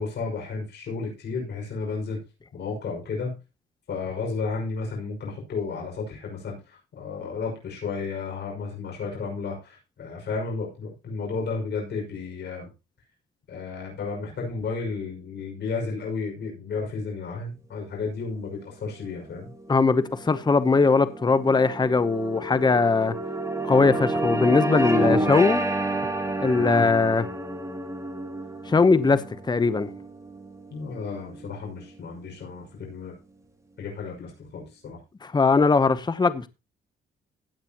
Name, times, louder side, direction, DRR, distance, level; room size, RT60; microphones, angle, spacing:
voice 1, 0.0-2.2 2.5-3.4 3.9-12.7 13.5-19.5 26.6-26.9 30.7-33.1 33.8-35.0, left 4 dB, 60° left, 5.8 m, -33 dB
sound 1, 19.2-31.8, right 1 dB, 15° right, 2.1 m, -30 dB
voice 2, 19.7-23.1 23.6-25.6 26.4-27.3 28.7-29.9 35.2-36.5, left 4 dB, 20° left, 0.9 m, -20 dB
16.5 x 8.9 x 3.0 m
cardioid pair, 90°, 20 cm